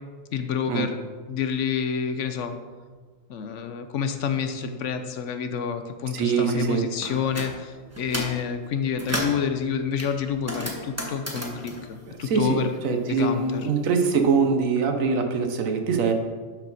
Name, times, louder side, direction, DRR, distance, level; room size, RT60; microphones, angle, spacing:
voice 1, 0.3-1.0 1.3-2.6 3.3-12.7 13.1-13.7, left 7 dB, 70° left, 8 dB, 0.9 m, -28 dB
voice 2, 6.1-6.8 12.2-16.1, right 5 dB, 85° right, 5 dB, 1.3 m, -23 dB
sound 1, 7.0-7.5 7.9-8.4 8.8-9.4 10.0-12.9 13.2-14.3, equal, 10° right, 1.1 m, -33 dB
11.5 x 4.6 x 4.0 m, 1.5 s
omnidirectional pair, 1.4 m